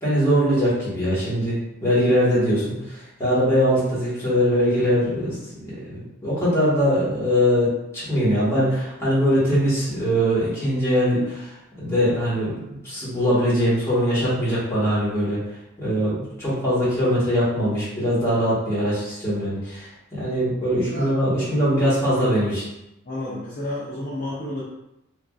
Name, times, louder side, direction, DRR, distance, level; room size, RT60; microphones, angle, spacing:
voice 1, 0.0-15.4 15.8-19.9 20.2-22.6, equal, 15° left, -10 dB, 1.3 m, -22 dB
voice 2, 23.1-24.6, left 1 dB, 40° left, -7 dB, 0.5 m, -31 dB
3.3 x 2.4 x 2.4 m, 0.90 s
head